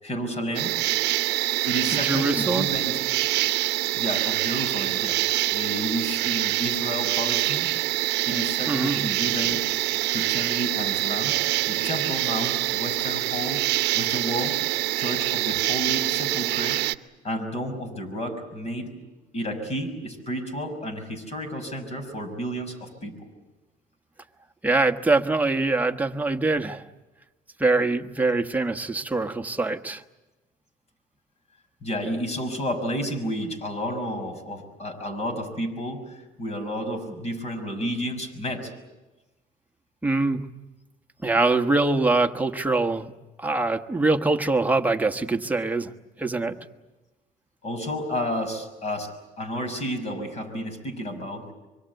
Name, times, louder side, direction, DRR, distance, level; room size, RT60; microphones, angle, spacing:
voice 1, 0.0-0.7 1.6-3.0 3.9-5.2 5.5-7.7 8.3-9.6 10.1-13.7 13.9-14.6 15.0-16.8 17.2-18.9 19.3-23.3 31.8-38.7 46.5-46.6 47.6-49.1 49.4-51.5, equal, 40° left, 8 dB, 6.1 m, -31 dB
sound 1, 0.6-17.0, right 16 dB, 85° right, 0.8 m, -25 dB
voice 2, 1.9-2.7 8.7-9.0 24.6-26.8 27.6-30.0 40.0-40.4 41.2-43.1 43.4-45.9 46.2-46.5, right 3 dB, 10° right, 5 dB, 1.3 m, -23 dB
25.5 x 23.5 x 8.1 m, 1.1 s
cardioid pair, 110°, 17 cm